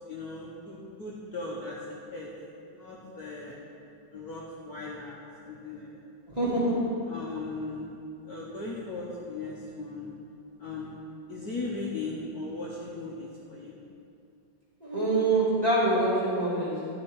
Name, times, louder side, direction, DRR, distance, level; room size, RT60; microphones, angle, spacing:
voice 1, 0.1-1.8 2.1-2.3 2.7-3.6 4.1-6.0 7.1-7.9 8.2-10.1 10.6-10.9 11.3-13.8, left 3 dB, 55° left, -5 dB, 1.2 m, -38 dB
voice 2, 6.3-6.9 14.8-16.9, right 2 dB, 20° right, -9 dB, 2.3 m, -25 dB
10.5 x 6.0 x 4.5 m, 2.5 s
omnidirectional pair, 2.3 m